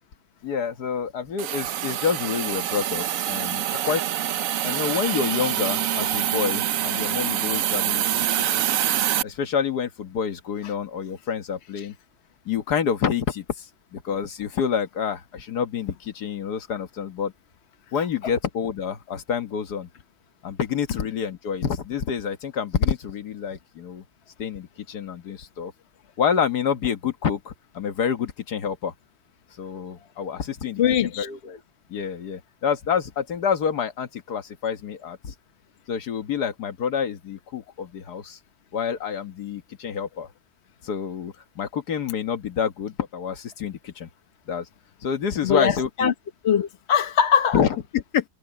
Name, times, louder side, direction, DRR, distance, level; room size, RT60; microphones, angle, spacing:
voice 1, 0.4-4.0 4.6-8.7 9.2-11.9 12.5-17.3 17.9-19.9 20.4-24.0 24.4-25.7 26.2-28.9 29.6-31.6 31.9-35.3 35.9-38.4 38.7-40.3 40.8-44.1 44.5-44.7 45.0-46.1 47.5-48.3, left 7 dB, 80° left, 1.8 m, -28 dB
Hiss, 1.4-9.2, right 11 dB, 65° right, 1.0 m, -25 dB
voice 2, 30.8-31.3 45.4-45.7 46.0-46.1 46.4-47.6, left 8 dB, 50° left, 1.0 m, -21 dB
omnidirectional pair, 1.7 m